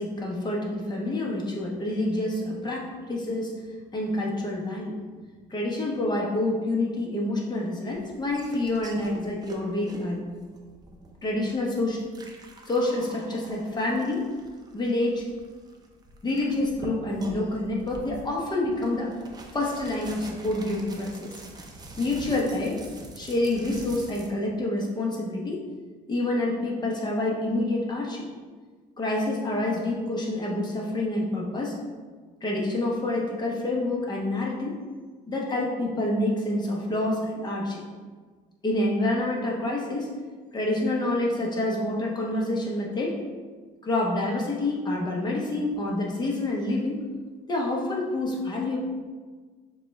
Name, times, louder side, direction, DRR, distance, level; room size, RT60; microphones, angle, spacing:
voice 1, 0.0-3.5 3.9-5.0 5.5-10.2 11.2-12.0 12.7-14.3 14.7-15.3 16.2-19.2 19.5-21.3 21.9-22.8 23.2-25.7 26.1-28.2 29.0-31.8 32.4-34.8 35.3-37.8 38.6-40.1 40.5-43.2 43.8-47.0 47.5-48.8, left 2 dB, 25° left, -2 dB, 0.9 m, -27 dB
sound 1, 7.9-24.3, right 2 dB, 25° right, 0.6 m, -45 dB
6.6 x 2.4 x 3.2 m, 1.4 s
cardioid pair, 110°, 17 cm